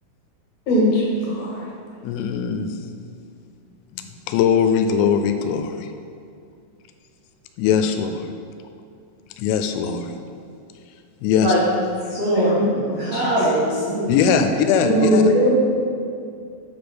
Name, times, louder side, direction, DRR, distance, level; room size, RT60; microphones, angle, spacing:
voice 1, 0.7-1.6 12.3-12.5 12.9-13.2 14.8-15.5, equal, 60° left, -5 dB, 2.9 m, -20 dB
voice 2, 2.0-2.7 3.9-5.9 7.6-8.3 9.4-10.1 11.2-11.5 14.1-15.3, left 7 dB, 85° left, 6 dB, 3.1 m, -20 dB
voice 3, 11.9-14.1 15.3-15.5, right 1 dB, 80° right, -8 dB, 1.5 m, -22 dB
8.6 x 5.2 x 6.2 m, 2.3 s
omnidirectional pair, 5.9 m